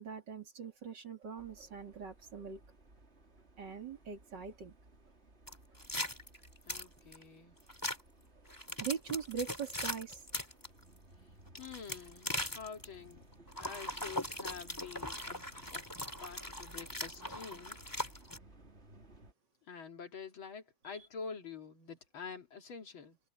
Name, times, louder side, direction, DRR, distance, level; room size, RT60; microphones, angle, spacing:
voice 1, 0.0-2.6 3.6-4.7 8.8-10.2, right 6 dB, 60° right, 3.2 m, -41 dB
sound 1, 1.4-19.3, right 2 dB, 30° right, 3.5 m, -59 dB
sound 2, 5.5-7.2 7.7-8.0 8.5-10.7 11.5-12.8 13.5-18.4, left 1 dB, 10° left, 2.8 m, -40 dB
voice 2, 6.7-7.6 11.6-13.2 13.6-17.8 19.7-23.2, left 6 dB, 80° left, 3.2 m, -47 dB
omnidirectional pair, 2.2 m